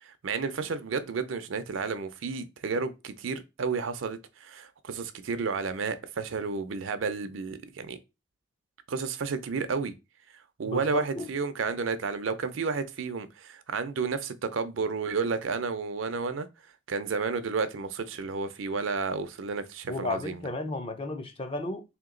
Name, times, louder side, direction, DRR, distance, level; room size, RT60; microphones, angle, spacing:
voice 1, 0.0-8.0 8.9-9.9 10.6-16.5 16.9-20.4, right 4 dB, 70° right, 0.5 m, -31 dB
voice 2, 10.6-11.3 19.9-21.8, left 2 dB, 30° left, 0.5 m, -33 dB
3.5 x 2.9 x 3.7 m
head